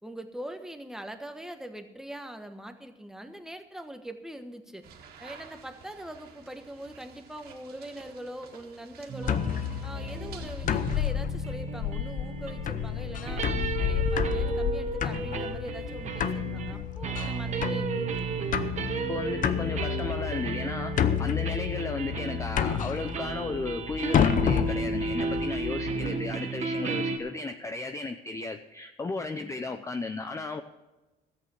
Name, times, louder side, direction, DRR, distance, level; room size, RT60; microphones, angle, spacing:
voice 1, 0.0-4.8 5.2-9.4 9.8-13.5 13.8-18.3 25.9-26.4 29.3-29.5, right 1 dB, 5° right, 6 dB, 1.2 m, -42 dB
sound 1, 4.8-11.0, right 6 dB, 65° right, 2.1 m, -51 dB
sound 2, 9.1-27.2, right 4 dB, 45° right, 1.5 m, -34 dB
sound 3, 9.2-26.1, left 9 dB, 50° left, 0.8 m, -30 dB
voice 2, 19.1-30.6, left 3 dB, 20° left, 8 dB, 0.6 m, -34 dB
13.0 x 8.5 x 6.3 m, 1.1 s
cardioid pair, 110°, 17 cm